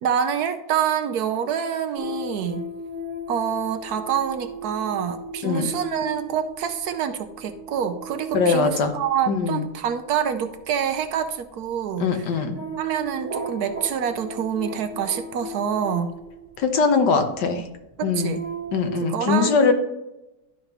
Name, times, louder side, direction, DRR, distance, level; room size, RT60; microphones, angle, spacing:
voice 1, 0.0-2.7 3.3-12.3 12.8-16.1 17.1-17.2 17.5-17.6 18.0-18.4 19.0-19.5, right 8 dB, 70° right, 9 dB, 1.1 m, -26 dB
sound 1, 2.0-17.1 17.7-19.1, right 1 dB, 45° right, 1.4 m, -37 dB
voice 2, 5.4-5.7 8.3-8.9 9.3-9.7 12.0-12.6 16.6-17.6 18.0-18.4 18.7-19.7, left 5 dB, 75° left, 6 dB, 1.5 m, -21 dB
12.0 x 5.2 x 3.0 m, 0.95 s
omnidirectional pair, 1.8 m